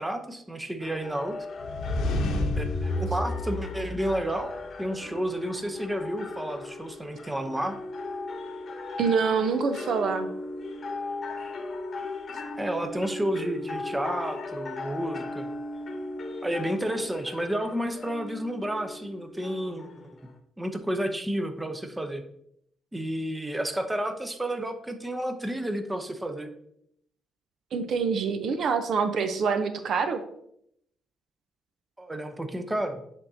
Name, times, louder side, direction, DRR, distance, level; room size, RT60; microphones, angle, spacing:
voice 1, 0.0-1.4 2.6-4.5 4.8-7.8 12.6-15.5 16.4-19.9 20.6-22.2 22.9-26.5 32.0-33.0, right 1 dB, 10° right, 7 dB, 0.7 m, -31 dB
sound 1, 0.8-20.4, left 2 dB, 50° left, 0.9 m, -38 dB
sound 2, 1.6-4.6, left 1 dB, 80° left, 0.8 m, -30 dB
voice 2, 9.0-10.3 27.7-30.2, right 5 dB, 65° right, 9 dB, 0.6 m, -26 dB
9.6 x 3.6 x 2.7 m, 0.73 s
cardioid pair, 90°, 0 cm